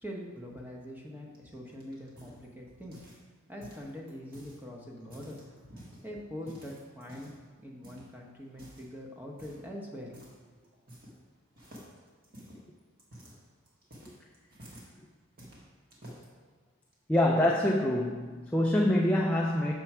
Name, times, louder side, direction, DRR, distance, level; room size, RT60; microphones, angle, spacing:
voice 1, 0.0-3.0 3.5-5.4 6.0-7.3 7.6-10.1, equal, 10° right, -1 dB, 0.9 m, -43 dB
sound 1, 1.3-3.3 3.6-4.6 5.0-6.0 6.4-7.4 7.8-8.1 8.5-8.9 9.4-9.7 10.1-10.4 10.6-11.3 11.6-14.9 15.4-16.3 16.9-17.5, equal, 40° right, 1.6 m, -51 dB
voice 2, 17.1-19.7, left 1 dB, 5° left, -2 dB, 0.4 m, -25 dB
6.8 x 4.5 x 6.0 m, 1.5 s
head